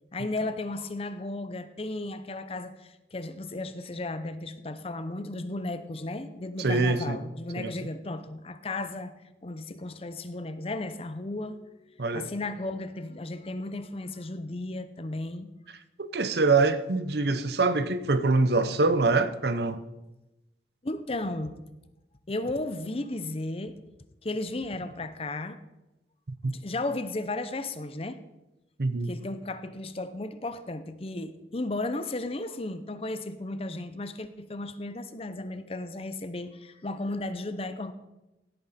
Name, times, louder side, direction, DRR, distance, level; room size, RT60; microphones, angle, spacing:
voice 1, 0.1-9.1 9.4-15.5 20.8-21.5 22.3-23.8 24.2-25.6 26.4-28.2 29.1-37.9, left 2 dB, 30° left, 0.7 m, -34 dB
voice 2, 6.6-7.2 7.6-7.7 12.0-12.3 16.0-19.8 26.4-26.5 28.8-29.1, right 3 dB, 60° right, 0.7 m, -24 dB
16.5 x 8.9 x 4.2 m
head